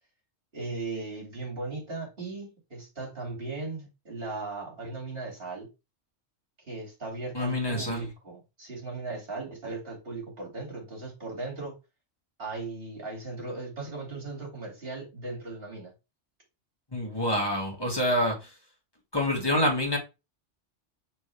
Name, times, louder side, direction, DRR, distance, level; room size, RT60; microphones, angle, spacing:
voice 1, 0.5-5.7 6.7-11.7 12.4-15.9, right 3 dB, 50° right, 2.9 m, -37 dB
voice 2, 7.3-8.1 16.9-18.5 19.1-20.0, left 1 dB, 20° left, 2.2 m, -27 dB
6.1 x 4.5 x 3.4 m
omnidirectional pair, 1.3 m